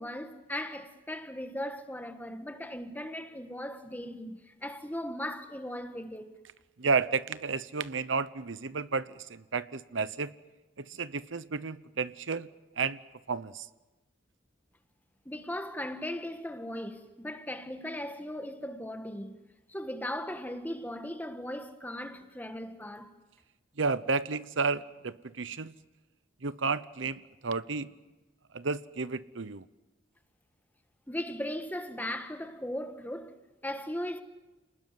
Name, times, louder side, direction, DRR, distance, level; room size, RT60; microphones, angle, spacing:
voice 1, 0.0-6.3 15.2-19.4 19.7-23.1 31.1-34.2, left 1 dB, 10° left, 1.6 m, -38 dB
voice 2, 6.8-10.3 10.8-12.5 12.8-13.0 13.3-13.7 23.8-25.7 26.4-27.9 28.5-29.6, right 4 dB, 75° right, 0.9 m, -32 dB
29.5 x 20.0 x 9.5 m
head